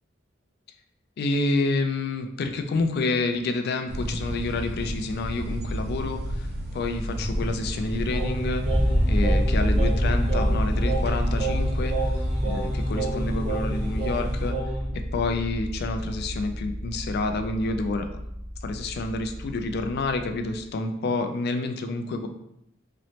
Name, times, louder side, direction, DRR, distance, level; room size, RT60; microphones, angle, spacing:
voice 1, 1.2-11.9 12.4-14.6 15.1-18.1 18.6-22.3, left 3 dB, 55° left, 7 dB, 0.4 m, -28 dB
sound 1, 3.9-14.5, equal, 55° right, 0.6 m, -31 dB
Singing, 8.1-14.9, right 2 dB, 35° right, 0.9 m, -32 dB
sound 2, 8.7-20.6, equal, 5° left, 0.8 m, -28 dB
3.0 x 3.0 x 2.7 m, 0.79 s
head